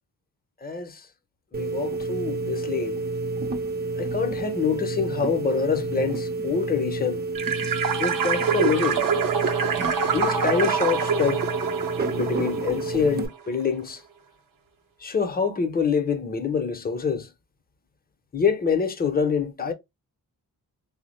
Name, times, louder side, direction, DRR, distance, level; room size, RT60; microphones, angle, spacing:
voice 1, 0.6-1.1 1.5-3.0 4.0-7.3 8.0-9.0 10.0-11.4 12.1-14.0 15.0-17.3 18.3-19.7, left 6 dB, 25° left, 0.6 m, -26 dB
sound 1, 1.5-13.3, right 3 dB, 25° right, 0.6 m, -30 dB
sound 2, 7.3-13.1, right 6 dB, 65° right, 0.7 m, -26 dB
3.3 x 2.0 x 3.0 m
cardioid pair, 75°, 36 cm